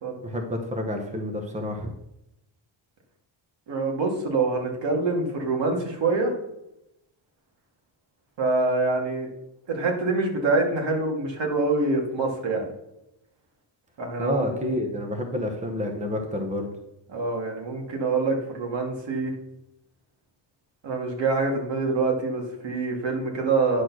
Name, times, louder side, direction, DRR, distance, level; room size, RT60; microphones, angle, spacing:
voice 1, 0.2-1.9 14.2-16.7, left 1 dB, 15° right, 4 dB, 1.0 m, -29 dB
voice 2, 3.7-6.3 8.4-9.3 9.7-12.6 14.0-14.5 17.1-19.3 20.8-23.8, right 3 dB, 65° right, 0 dB, 2.3 m, -25 dB
9.7 x 4.4 x 6.1 m, 0.86 s
wide cardioid pair, 165°, 47 cm